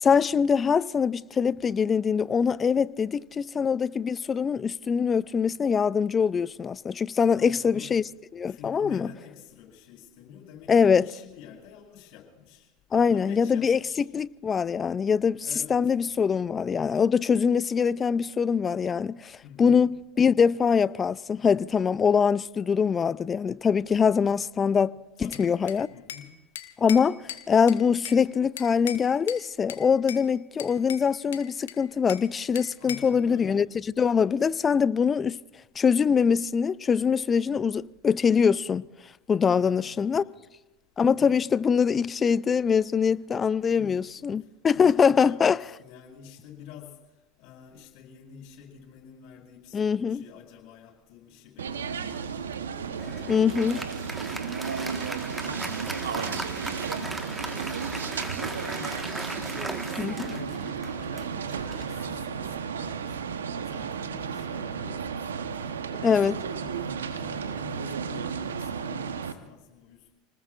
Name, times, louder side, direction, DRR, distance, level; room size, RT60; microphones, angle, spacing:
voice 1, 0.0-8.0 8.3-9.1 10.7-11.0 12.9-13.8 14.1-15.4 15.7-25.9 26.8-27.2 27.5-33.7 34.0-35.4 35.8-38.8 39.3-40.2 41.0-45.6 49.7-50.2 53.3-53.8 60.0-60.3 66.0-66.3, left 6 dB, 25° left, 0.4 m, -23 dB
voice 2, 7.3-8.1 8.5-12.7 12.9-14.1 15.3-15.9 19.4-19.8 25.2-26.3 32.7-33.7 39.5-40.4 43.8-44.2 44.7-47.0 47.4-55.1 55.4-58.9 59.3-63.2 63.6-65.7 66.1-70.1, left 8 dB, 60° left, 7.8 m, -48 dB
Bell / Glass, 25.3-26.3 26.6-28.2 28.6-29.4 29.7-30.3 30.6-32.3 32.6-33.2, left 10 dB, 80° left, 1.0 m, -39 dB
sound 1, 51.6-69.3, right 6 dB, 85° right, 1.0 m, -33 dB
Applause, 53.0-62.8, right 1 dB, 10° right, 1.5 m, -38 dB
29.5 x 19.5 x 2.5 m
hypercardioid pair, 90°, 0 cm